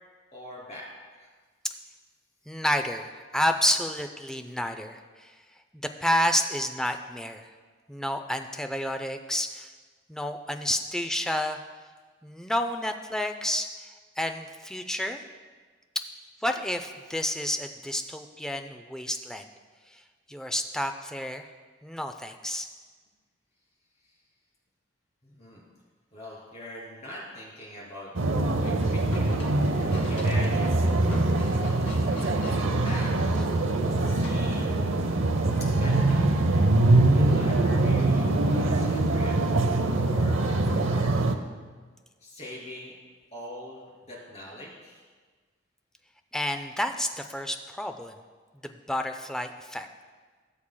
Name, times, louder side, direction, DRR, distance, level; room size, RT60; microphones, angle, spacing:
voice 1, 0.3-0.9 1.1-1.3 24.0-24.1 25.2-25.7 26.1-28.1 28.4-29.3 30.1-30.7 32.1-33.1 33.9-34.7 35.8-36.3 37.1-39.4 39.8-40.4 40.8-41.1 42.2-42.9 43.3-43.8 44.1-45.0, left 1 dB, 35° left, -4 dB, 2.8 m, -42 dB
voice 2, 2.5-5.3 6.0-7.5 7.9-9.7 10.1-11.6 12.2-13.9 14.2-15.2 16.4-19.5 19.9-20.0 20.3-21.4 21.8-22.7 46.3-48.2 48.9-49.9, left 1 dB, 5° left, 6 dB, 0.4 m, -30 dB
sound 1, 28.1-41.3, right 2 dB, 85° right, 0.6 m, -23 dB
sound 2, 28.7-33.0 34.2-34.6, left 1 dB, 80° left, 2.4 m, -39 dB
17.5 x 7.2 x 2.2 m, 1.5 s
head